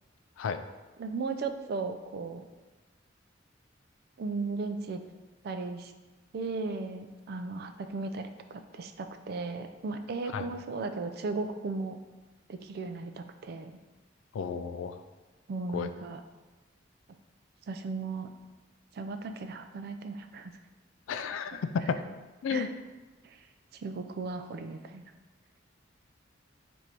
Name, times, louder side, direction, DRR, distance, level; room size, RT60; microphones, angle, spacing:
voice 1, 1.0-2.5 4.2-5.0 5.4-5.9 6.3-12.0 12.5-13.8 15.5-16.2 17.7-18.3 18.9-20.5 21.2-21.3 22.5-22.7 23.2-23.4 23.7-25.0, right 3 dB, 50° right, 8 dB, 0.3 m, -36 dB
voice 2, 14.3-15.0 15.7-15.9 21.1-22.0 22.4-22.7, left 6 dB, 75° left, 10 dB, 0.3 m, -32 dB
4.7 x 2.6 x 4.3 m, 1.2 s
head